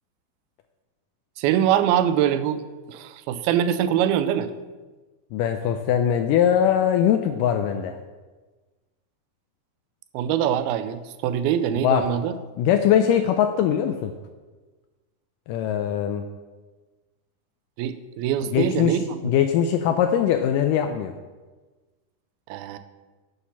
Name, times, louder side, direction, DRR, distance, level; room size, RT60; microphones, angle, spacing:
voice 1, 1.4-2.6 2.9-4.5 10.1-12.4 17.8-19.2 22.5-22.8, right 10 dB, 90° right, 12 dB, 2.4 m, -23 dB
voice 2, 5.3-8.0 11.8-12.1 12.6-14.1 15.5-16.2 18.5-21.1, left 9 dB, 85° left, 7 dB, 1.9 m, -21 dB
9.5 x 6.6 x 5.6 m, 1.3 s
omnidirectional pair, 4.2 m